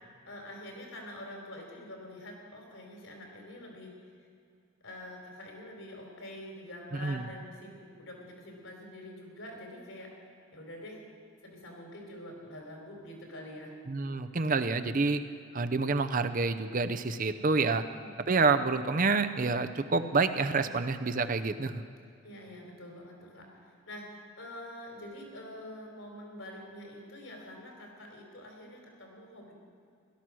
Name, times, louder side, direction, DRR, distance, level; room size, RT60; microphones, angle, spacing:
voice 1, 0.3-4.3 4.8-11.0 11.4-13.7 17.9-18.3 22.2-29.5, left 1 dB, 75° left, 0 dB, 3.9 m, -46 dB
voice 2, 13.9-15.2 15.5-17.8 18.3-21.8, right 4 dB, 40° right, 10 dB, 0.6 m, -28 dB
17.0 x 12.5 x 6.2 m, 2.4 s
head